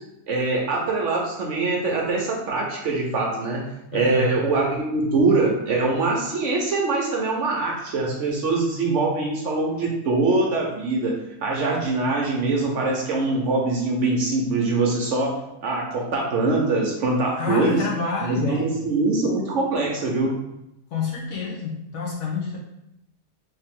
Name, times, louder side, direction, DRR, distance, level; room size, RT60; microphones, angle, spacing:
voice 1, 0.3-11.1 11.4-15.3 15.6-17.8 18.2-20.3, right 3 dB, 60° right, -1 dB, 0.9 m, -23 dB
voice 2, 3.9-4.3 17.4-18.7 20.9-22.6, left 4 dB, 60° left, -3 dB, 0.9 m, -28 dB
3.3 x 2.9 x 3.5 m, 0.86 s
omnidirectional pair, 1.6 m